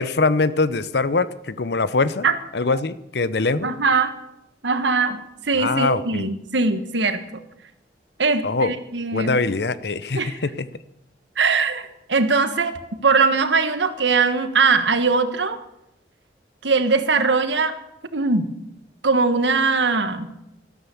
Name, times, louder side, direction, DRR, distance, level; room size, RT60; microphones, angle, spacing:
voice 1, 0.0-2.3 2.5-3.7 5.6-6.3 8.4-8.7 9.1-10.7, left 3 dB, 70° left, 15 dB, 0.7 m, -22 dB
voice 2, 3.6-4.1 4.6-7.2 8.2-9.4 10.1-10.4 11.4-15.6 16.6-17.7 18.1-18.5 19.0-20.3, right 4 dB, 90° right, 10 dB, 1.4 m, -21 dB
13.5 x 13.0 x 7.0 m, 0.83 s
head